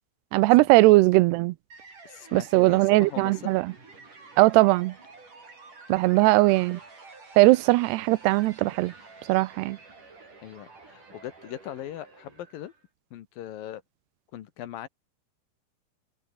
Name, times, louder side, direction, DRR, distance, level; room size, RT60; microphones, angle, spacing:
voice 1, 0.3-1.5 2.3-3.7 4.4-4.9 5.9-6.8 7.4-8.9 9.3-9.8, right 20 dB, 90° right, 2.8 m, -19 dB
sound 1, 1.7-12.9, right 3 dB, 50° right, 9.1 m, -50 dB
voice 2, 2.0-3.5 5.9-6.2 10.4-12.7 13.1-13.8 14.3-14.9, left 12 dB, 65° left, 2.8 m, -40 dB
omnidirectional pair, 4.6 m